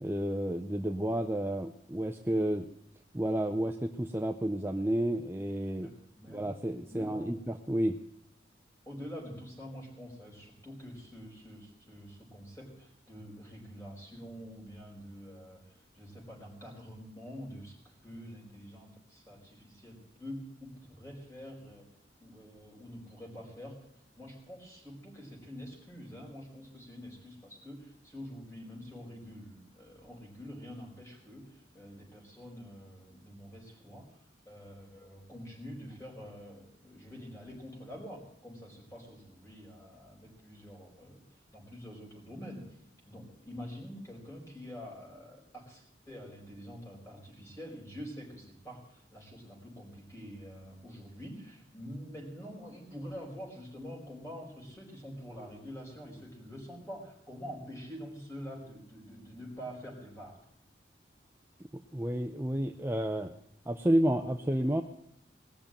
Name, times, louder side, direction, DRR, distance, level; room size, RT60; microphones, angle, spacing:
voice 1, 0.0-2.7 3.1-5.9 6.3-8.0 61.9-63.3 63.7-64.8, right 1 dB, 10° right, 5 dB, 0.5 m, -31 dB
voice 2, 5.8-6.5 6.9-7.3 8.8-21.9 22.2-23.9 24.2-34.2 34.5-42.8 43.1-60.4, equal, 15° left, -2 dB, 5.0 m, -46 dB
20.0 x 6.9 x 8.9 m, 0.73 s
head